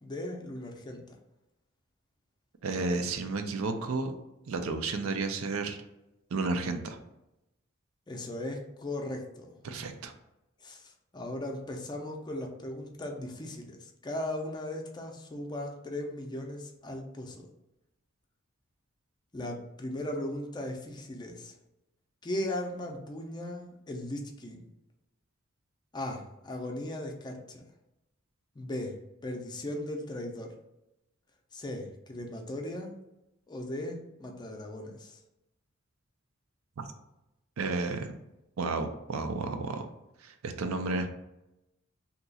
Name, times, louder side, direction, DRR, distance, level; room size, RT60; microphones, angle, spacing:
voice 1, 0.0-1.1 8.1-9.5 10.6-17.5 19.3-21.5 22.2-24.7 25.9-27.6 28.6-29.0 29.2-30.5 31.5-33.0 33.5-35.2, left 1 dB, 20° left, 3 dB, 0.5 m, -37 dB
voice 2, 2.6-4.1 4.5-5.8 6.3-7.0 9.6-10.1 37.6-38.1 38.6-39.9 40.2-41.1, right 3 dB, 85° right, 6 dB, 0.4 m, -32 dB
2.8 x 2.3 x 4.0 m, 0.92 s
head